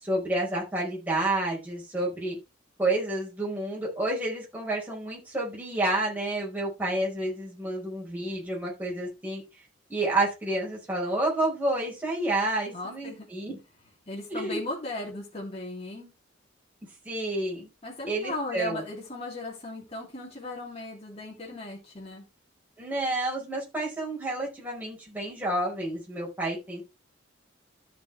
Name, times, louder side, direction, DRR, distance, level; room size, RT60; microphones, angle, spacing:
voice 1, 0.0-2.4 2.8-9.4 9.9-13.6 14.3-14.6 17.0-17.7 18.0-18.8 22.8-26.8, right 2 dB, 10° right, -4 dB, 4.9 m, -29 dB
voice 2, 12.7-13.3 14.1-16.1 17.8-22.2, left 2 dB, 35° left, -4 dB, 3.2 m, -37 dB
13.0 x 5.8 x 3.4 m, 0.25 s
head